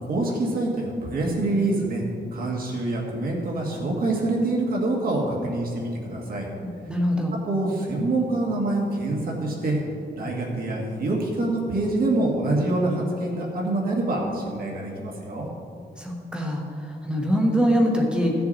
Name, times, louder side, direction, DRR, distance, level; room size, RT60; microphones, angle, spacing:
voice 1, 0.0-2.0 2.3-6.5 7.4-9.8 10.1-15.5, right 2 dB, 55° right, -1 dB, 1.9 m, -25 dB
voice 2, 6.9-7.3 16.0-18.3, equal, 5° right, 0 dB, 1.2 m, -23 dB
15.0 x 6.9 x 4.1 m, 2.5 s
wide cardioid pair, 175°, 18 cm